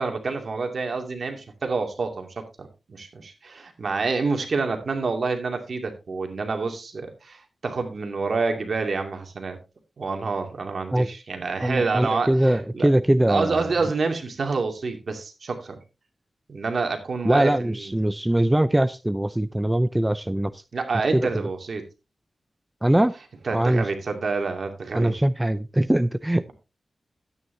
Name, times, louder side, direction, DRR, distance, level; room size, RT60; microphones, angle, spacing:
voice 1, 0.0-9.6 10.0-12.9 13.3-15.8 16.5-18.0 20.7-21.8 23.4-25.2, right 4 dB, 65° right, 5 dB, 2.4 m, -28 dB
voice 2, 11.6-13.7 17.2-20.6 21.1-21.3 22.8-23.1 23.5-23.9 24.9-26.5, right 1 dB, 10° right, 13 dB, 0.5 m, -22 dB
12.5 x 9.4 x 2.7 m, 0.27 s
cardioid pair, 70°, 0 cm